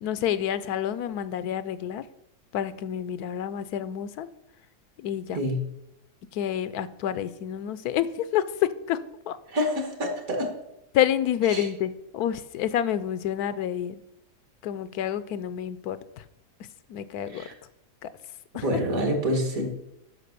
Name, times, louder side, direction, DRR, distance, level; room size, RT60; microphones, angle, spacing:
voice 1, 0.0-2.0 2.5-4.3 5.0-5.4 6.3-9.0 9.3-9.4 10.9-14.0 14.6-16.0 16.9-17.5 18.0-18.1 18.5-18.6, left 10 dB, 85° left, 14 dB, 1.1 m, -28 dB
voice 2, 9.5-10.5 11.5-11.7 17.3-17.5 18.6-19.7, equal, 65° right, 3 dB, 2.5 m, -27 dB
10.0 x 5.9 x 6.8 m, 0.85 s
omnidirectional pair, 1.6 m